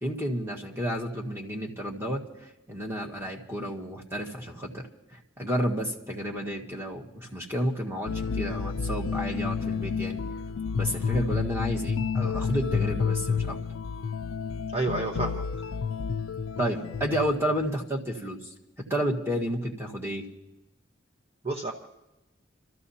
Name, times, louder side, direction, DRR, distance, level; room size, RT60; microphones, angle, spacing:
voice 1, 0.0-2.2 2.7-4.8 5.4-10.2 10.7-13.6 16.6-20.2, equal, 15° right, -1 dB, 1.7 m, -31 dB
sound 1, 8.1-17.6, left 6 dB, 85° left, 0.4 m, -30 dB
voice 2, 14.7-15.4 21.4-21.7, right 3 dB, 30° right, 1 dB, 1.0 m, -29 dB
29.5 x 14.0 x 2.8 m, 0.97 s
head